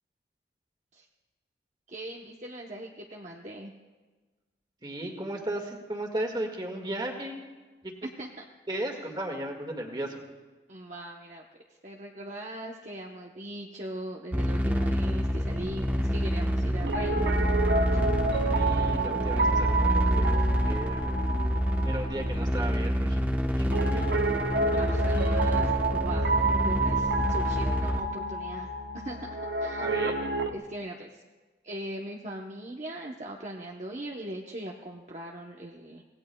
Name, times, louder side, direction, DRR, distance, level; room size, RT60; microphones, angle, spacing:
voice 1, 1.9-3.7 8.0-8.4 8.7-8.9 10.7-11.4 11.8-17.3 24.8-30.0 30.5-31.2 31.6-36.0, right 1 dB, 40° right, -1 dB, 0.9 m, -40 dB
voice 2, 4.8-7.4 7.8-7.9 8.7-10.3 18.5-21.2 21.8-24.1 29.8-30.2, right 1 dB, 25° right, 2 dB, 1.8 m, -35 dB
sound 1, 14.3-28.0, equal, 10° right, 1.0 m, -27 dB
Piano, 16.8-30.5, right 3 dB, 70° right, 0.8 m, -30 dB
25.5 x 18.5 x 2.3 m, 1.3 s
head